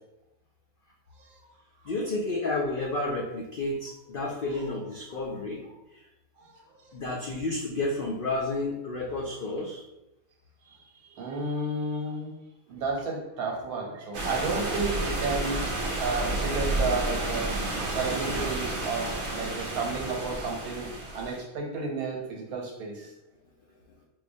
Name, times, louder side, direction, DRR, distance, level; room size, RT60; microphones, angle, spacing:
voice 1, 1.9-5.6 6.9-9.8, left 2 dB, 80° left, -2 dB, 0.4 m, -31 dB
voice 2, 6.4-7.0 11.0-12.3 12.7-20.9 21.1-23.1, right 3 dB, 85° right, 0 dB, 1.3 m, -32 dB
sound 1, 14.1-21.4, right 2 dB, 60° right, 0.9 m, -31 dB
4.4 x 2.3 x 2.6 m, 0.89 s
omnidirectional pair, 1.5 m